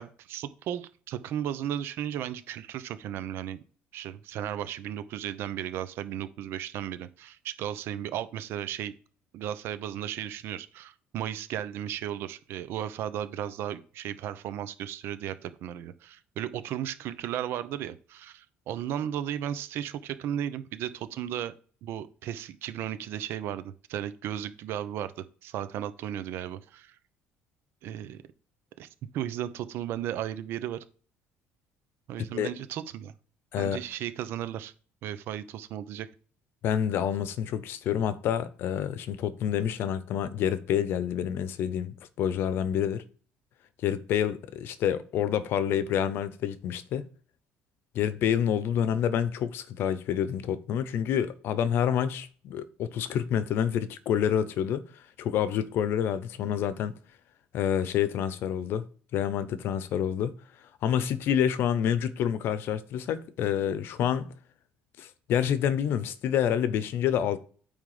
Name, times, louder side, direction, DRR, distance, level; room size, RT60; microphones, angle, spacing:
voice 1, 0.0-3.6 3.9-8.9 9.3-21.5 21.8-26.9 27.8-28.2 28.8-28.9 29.1-30.8 32.1-33.1 33.6-34.7 35.0-36.1, right 10 dB, 60° right, 0.7 m, -35 dB
voice 2, 36.6-43.0 43.8-47.1 47.9-54.8 55.2-56.9 57.5-58.8 59.1-60.3 60.8-64.3 65.0-67.4, left 9 dB, 55° left, 0.8 m, -28 dB
9.0 x 3.5 x 4.9 m
cardioid pair, 150°, 5 cm